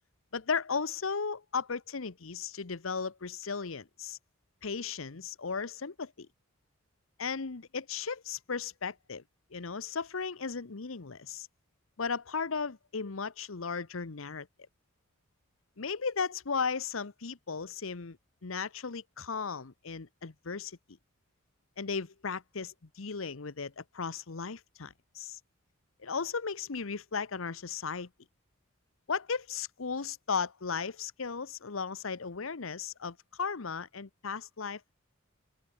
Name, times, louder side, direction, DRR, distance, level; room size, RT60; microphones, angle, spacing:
voice 1, 0.3-4.2 4.6-6.3 7.2-9.2 9.5-11.5 12.0-14.5 15.8-18.2 18.4-20.8 21.8-25.4 26.0-28.1 29.1-34.9, left 5 dB, 80° left, 1.0 m, -36 dB
open air
head